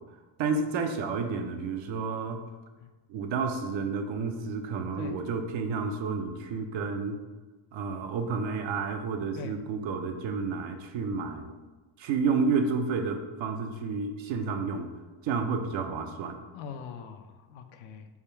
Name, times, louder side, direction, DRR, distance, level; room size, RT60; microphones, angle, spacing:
voice 1, 0.4-2.4 3.1-7.2 7.7-11.5 12.0-14.9 15.2-16.4, right 4 dB, 70° right, 6 dB, 0.6 m, -30 dB
voice 2, 16.5-18.1, left 6 dB, 80° left, 7 dB, 0.5 m, -42 dB
3.5 x 2.2 x 4.3 m, 1.2 s
cardioid pair, 80°, 48 cm